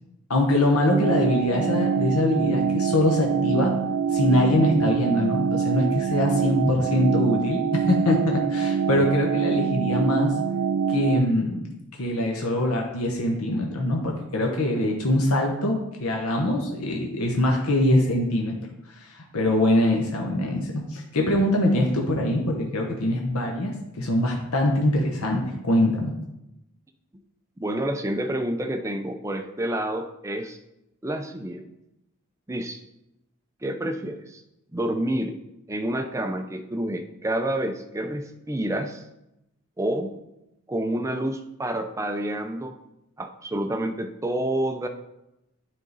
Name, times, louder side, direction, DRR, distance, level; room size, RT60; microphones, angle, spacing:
voice 1, 0.3-3.7 4.1-10.3 10.9-11.7 12.0-18.6 19.0-26.1, left 1 dB, 80° left, 0 dB, 0.9 m, -23 dB
sound 1, 0.9-11.2, right 7 dB, 75° right, 0.3 m, -25 dB
voice 2, 27.6-30.6 31.0-31.7 32.5-32.8 33.6-34.4 34.7-35.4 35.7-39.0 39.8-40.2 40.7-42.7 43.2-44.9, right 1 dB, 15° right, 6 dB, 0.4 m, -28 dB
9.5 x 3.7 x 4.0 m, 0.89 s
head